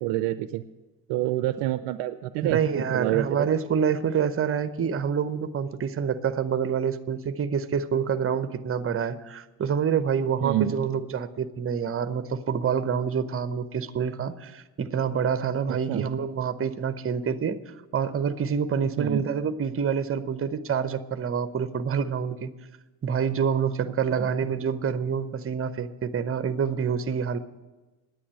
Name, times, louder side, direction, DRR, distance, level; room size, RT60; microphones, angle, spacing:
voice 1, 0.0-0.6 1.1-2.6 2.9-3.5 10.4-10.7 15.7-16.1 19.0-19.3 24.1-24.3, right 14 dB, 60° right, 13 dB, 0.6 m, -27 dB
voice 2, 2.4-17.6 17.9-22.5 23.0-27.4, right 7 dB, 30° right, 12 dB, 0.8 m, -27 dB
9.9 x 9.0 x 8.1 m, 1.2 s
hypercardioid pair, 55°, 48 cm